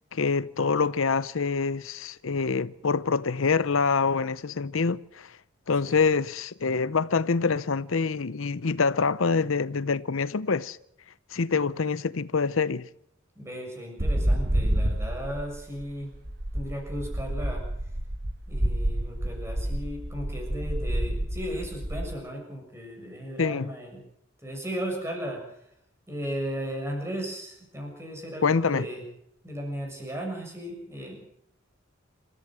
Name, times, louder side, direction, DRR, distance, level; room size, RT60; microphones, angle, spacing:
voice 1, 0.1-5.4 5.7-10.8 11.3-12.9 23.4-23.7 28.4-28.9, left 5 dB, 85° left, 0.7 m, -26 dB
voice 2, 13.4-16.1 16.5-17.6 18.5-24.0 24.4-25.6 26.1-29.0 29.4-31.3, equal, 15° right, 6.7 m, -36 dB
sound 1, 14.0-22.1, right 1 dB, 55° right, 1.7 m, -29 dB
27.5 x 14.5 x 7.5 m
head